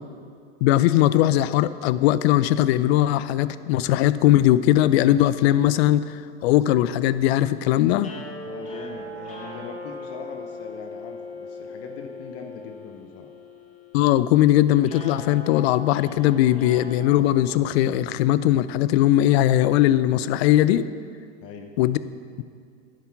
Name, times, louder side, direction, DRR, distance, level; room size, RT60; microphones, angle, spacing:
voice 1, 0.6-8.1 13.9-20.9 21.8-22.0, left 13 dB, 65° left, 15 dB, 0.6 m, -19 dB
sound 1, 8.0-18.2, left 2 dB, 20° left, 2.4 m, -40 dB
voice 2, 8.4-13.3 21.4-21.8, left 6 dB, 45° left, 4 dB, 1.0 m, -41 dB
10.5 x 9.3 x 5.8 m, 2.3 s
supercardioid pair, 120°, 34 cm